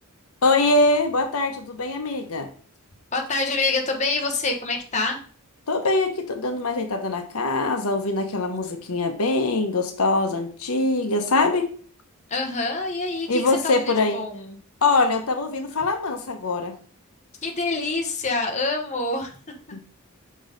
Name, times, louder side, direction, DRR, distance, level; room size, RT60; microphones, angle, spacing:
voice 1, 0.4-2.5 5.7-11.7 13.3-14.3 14.8-16.7 19.7-19.8, left 3 dB, 70° left, 0.9 m, -23 dB
voice 2, 3.1-5.2 12.3-14.6 17.4-19.3, left 3 dB, 30° left, 1.0 m, -26 dB
6.2 x 3.7 x 5.0 m
head